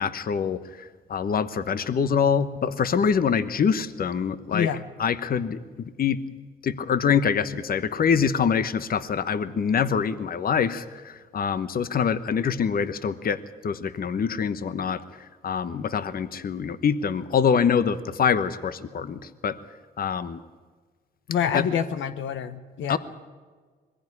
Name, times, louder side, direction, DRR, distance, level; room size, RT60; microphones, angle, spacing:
voice 1, 0.0-4.7 5.0-5.6 6.0-6.2 6.6-13.4 13.6-15.0 15.4-19.5 20.0-20.4 21.5-21.6 22.9-23.0, left 7 dB, 45° left, 13 dB, 1.1 m, -25 dB
voice 2, 4.5-4.9 21.3-23.0, left 8 dB, 75° left, 10 dB, 1.0 m, -27 dB
22.0 x 15.5 x 9.8 m, 1.5 s
cardioid pair, 90°, 20 cm